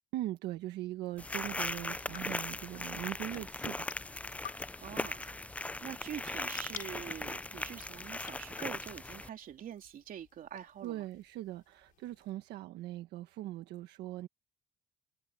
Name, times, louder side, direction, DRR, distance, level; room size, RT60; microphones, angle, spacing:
voice 1, 0.1-3.9 10.8-14.3, right 15 dB, 85° right, 1.4 m, -40 dB
sound 1, 1.0-12.3, left 9 dB, 55° left, 4.5 m, -54 dB
sound 2, 1.2-9.3, left 2 dB, 10° left, 0.4 m, -39 dB
voice 2, 4.8-5.3 5.8-11.1, right 9 dB, 55° right, 3.1 m, -45 dB
cardioid pair, 110°, 17 cm